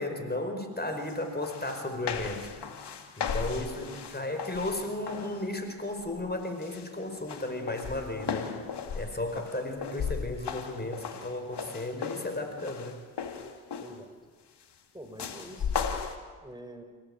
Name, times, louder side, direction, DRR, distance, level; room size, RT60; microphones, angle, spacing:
voice 1, 0.0-2.4 3.2-8.5 8.9-13.0, left 2 dB, 25° left, 6 dB, 5.1 m, -34 dB
sound 1, 1.1-1.2 1.4-5.5 5.9-6.3 6.6-14.1 15.2-16.2, left 6 dB, 75° left, 2.6 m, -36 dB
voice 2, 3.8-4.3 13.8-14.1 14.9-15.7 16.4-16.8, right 1 dB, 10° right, 5 dB, 5.5 m, -46 dB
29.0 x 18.0 x 9.0 m, 1.5 s
cardioid pair, 55°, 41 cm